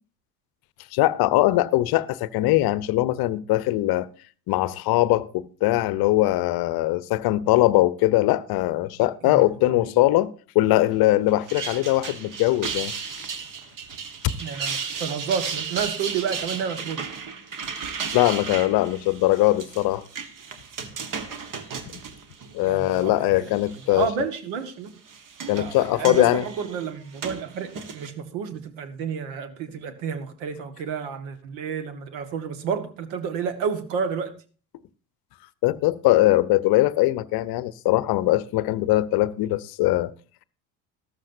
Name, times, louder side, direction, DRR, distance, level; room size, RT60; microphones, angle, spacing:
voice 1, 0.9-4.1 4.5-12.9 14.2-14.3 18.1-20.0 22.5-24.1 25.5-26.4 35.6-40.1, left 16 dB, 50° left, 0.8 m, -21 dB
voice 2, 9.2-9.9 14.4-17.1 22.7-23.5 23.9-24.9 25.5-34.3, right 6 dB, 60° right, 1.8 m, -30 dB
sound 1, 11.3-23.0 23.5-24.1 24.9-28.1, right 5 dB, 40° right, 1.6 m, -35 dB
14.0 x 13.0 x 2.7 m
hypercardioid pair, 65°, 49 cm